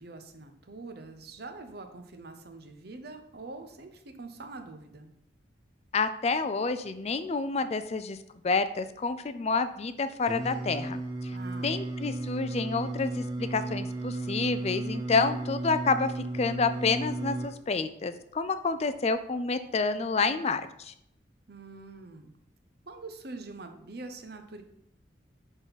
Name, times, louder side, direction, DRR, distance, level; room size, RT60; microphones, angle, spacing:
voice 1, 0.0-5.1 11.3-11.8 21.5-22.3 22.9-24.6, right 3 dB, 60° right, 6 dB, 0.9 m, -44 dB
voice 2, 5.9-8.2 8.4-11.3 11.6-20.9, left 4 dB, 35° left, 11 dB, 0.4 m, -29 dB
Singing, 10.3-17.5, right 2 dB, 25° right, 1.0 m, -34 dB
11.0 x 3.9 x 4.1 m, 0.74 s
head